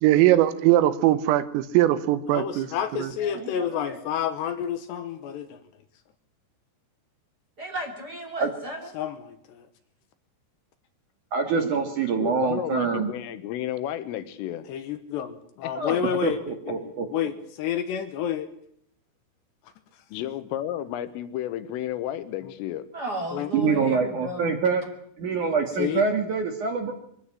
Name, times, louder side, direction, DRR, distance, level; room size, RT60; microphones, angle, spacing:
voice 1, 0.0-2.7 3.0-3.1, right 14 dB, 90° right, 3.8 m, -20 dB
voice 2, 2.3-5.6 8.9-9.7 14.7-18.5 22.4-22.5 23.3-23.5 25.8-26.1, left 9 dB, 75° left, 2.8 m, -30 dB
voice 3, 3.2-4.0 7.6-8.9 11.6-11.7 15.7-16.1 22.9-24.6, right 1 dB, 30° right, 1.9 m, -34 dB
voice 4, 11.3-13.1 16.2-17.1 23.5-24.8 25.2-26.9, right 5 dB, 55° right, 2.4 m, -25 dB
voice 5, 12.2-14.7 15.6-15.7 20.1-22.9, left 12 dB, 90° left, 3.8 m, -32 dB
23.0 x 13.5 x 9.9 m
omnidirectional pair, 5.7 m